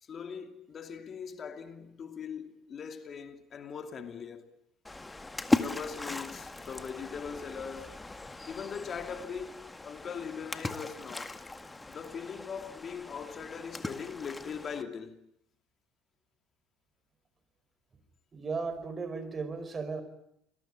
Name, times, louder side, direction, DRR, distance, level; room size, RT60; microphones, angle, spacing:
voice 1, 0.0-4.5 5.6-7.9 8.4-11.4 11.9-15.2, left 6 dB, 40° left, 2.7 m, -41 dB
Splash splatter, 4.8-14.8, left 2 dB, 15° left, 1.8 m, -37 dB
voice 2, 18.3-20.0, right 4 dB, 30° right, 4.9 m, -35 dB
28.5 x 21.0 x 8.9 m
hypercardioid pair, 75°, 0 cm